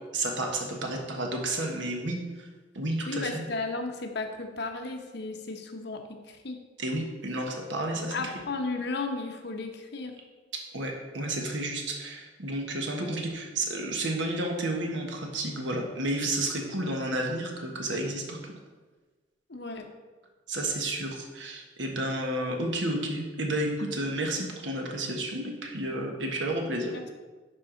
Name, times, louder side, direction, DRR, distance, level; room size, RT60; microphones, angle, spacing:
voice 1, 0.1-2.2 2.7-3.5 6.8-8.1 10.7-18.4 20.5-26.9, right 1 dB, 70° right, 1 dB, 1.3 m, -31 dB
voice 2, 3.1-6.0 6.3-6.6 8.1-10.2 19.5-19.8 26.9-27.1, left 3 dB, 65° left, 5 dB, 0.9 m, -34 dB
10.5 x 4.8 x 3.9 m, 1.3 s
head